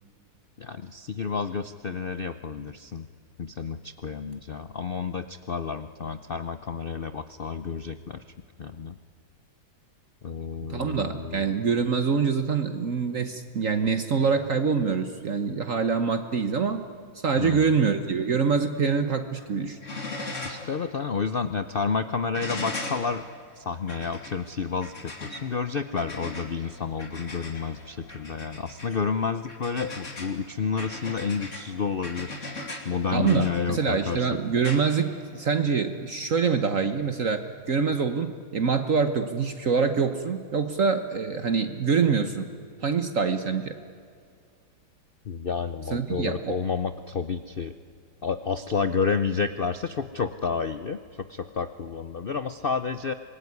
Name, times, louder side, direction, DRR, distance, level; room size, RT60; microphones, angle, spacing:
voice 1, 0.6-3.1 3.4-8.2 8.6-9.0 10.2-11.4 17.4-17.7 20.4-23.2 23.6-32.3 32.8-34.3 45.2-47.7 48.2-53.1, left 5 dB, 85° left, 11 dB, 0.4 m, -30 dB
voice 2, 10.7-16.9 17.2-19.8 20.2-20.3 33.1-42.5 42.8-43.8 45.9-46.6, right 5 dB, 50° right, 9 dB, 1.3 m, -25 dB
sound 1, 19.2-19.5 19.8-20.7 21.1-21.2 22.3-35.7 37.1-37.2, left 2 dB, 40° left, 3.0 m, -39 dB
25.5 x 21.0 x 9.6 m, 2.3 s
omnidirectional pair, 2.1 m